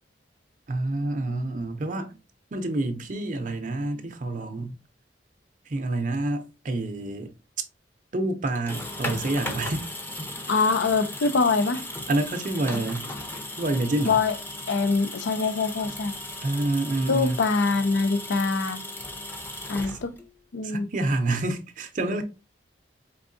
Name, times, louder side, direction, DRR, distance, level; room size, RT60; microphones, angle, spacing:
voice 1, 0.7-2.2 2.5-4.8 5.7-7.3 8.1-9.9 10.6-10.7 11.2-11.3 12.1-13.1 13.6-14.2 16.4-17.4 19.8-20.0 20.6-22.2, right 2 dB, 45° right, 0.5 m, -28 dB
sound 1, 8.5-20.4, left 1 dB, 10° left, 0.6 m, -36 dB
voice 2, 10.5-11.8 14.1-14.3 14.7-16.1 17.1-18.8 19.7-20.2 20.5-20.9, left 4 dB, 90° left, 0.5 m, -24 dB
4.5 x 3.5 x 2.6 m
head